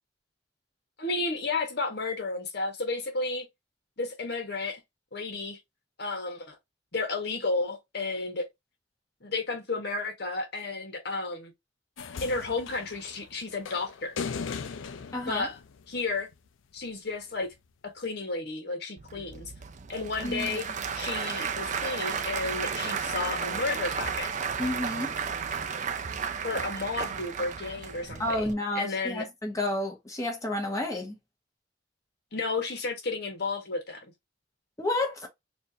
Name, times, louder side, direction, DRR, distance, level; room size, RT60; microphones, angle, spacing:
voice 1, 1.0-3.5 4.0-4.8 5.1-5.6 6.0-6.6 6.9-8.5 9.2-11.5 12.2-14.1 15.2-15.6 15.9-16.3 16.7-17.5 17.9-19.5 19.9-20.7 20.9-24.3 26.4-29.3 32.3-34.1, left 3 dB, 55° left, 1.3 m, -32 dB
sound 1, 12.0-16.3 17.5-17.6, left 5 dB, 85° left, 0.5 m, -38 dB
voice 2, 15.1-15.5 20.2-20.6 24.6-25.1 28.2-31.2 34.8-35.3, left 1 dB, 15° left, 1.2 m, -30 dB
Applause / Crowd, 19.0-28.5, right 6 dB, 40° right, 0.5 m, -33 dB
4.3 x 2.6 x 2.7 m
head